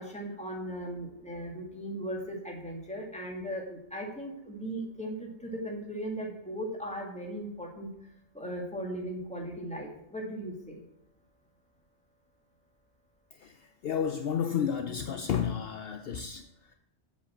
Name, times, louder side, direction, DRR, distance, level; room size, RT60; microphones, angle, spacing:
voice 1, 0.0-7.9 8.3-10.8, right 1 dB, 5° left, -2 dB, 2.0 m, -38 dB
voice 2, 13.3-16.7, left 8 dB, 65° left, 7 dB, 0.8 m, -32 dB
7.9 x 5.2 x 7.2 m, 0.83 s
omnidirectional pair, 1.2 m